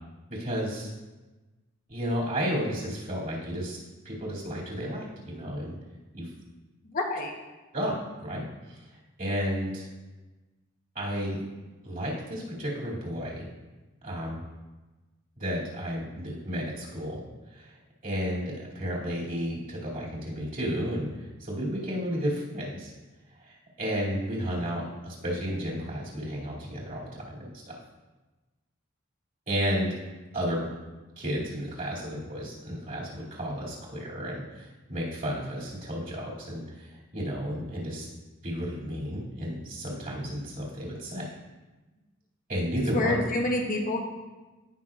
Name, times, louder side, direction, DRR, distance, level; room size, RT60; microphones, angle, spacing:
voice 1, 0.3-0.9 1.9-3.8 4.0-5.7 6.1-6.3 7.7-8.0 8.2-8.8 9.2-9.9 10.9-11.4 11.8-13.5 14.0-14.4 15.4-17.2 17.5-17.7 18.0-22.9 23.5-27.4 29.5-29.9 30.3-30.7 31.2-38.1 38.4-41.3 42.5-43.2, equal, 40° right, -6 dB, 2.5 m, -32 dB
voice 2, 6.9-7.3 42.9-44.0, left 2 dB, 40° left, 1 dB, 0.9 m, -27 dB
15.5 x 5.7 x 2.4 m, 1.2 s
head